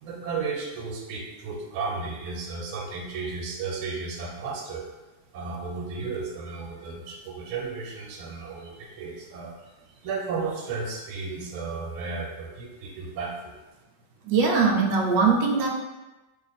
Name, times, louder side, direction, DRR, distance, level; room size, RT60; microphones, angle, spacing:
voice 1, 0.0-4.9 5.3-9.5 10.0-13.5, right 4 dB, 90° right, 0 dB, 1.6 m, -34 dB
voice 2, 14.3-15.7, right 4 dB, 70° right, 0 dB, 1.2 m, -21 dB
3.2 x 2.4 x 4.0 m, 1.1 s
omnidirectional pair, 2.3 m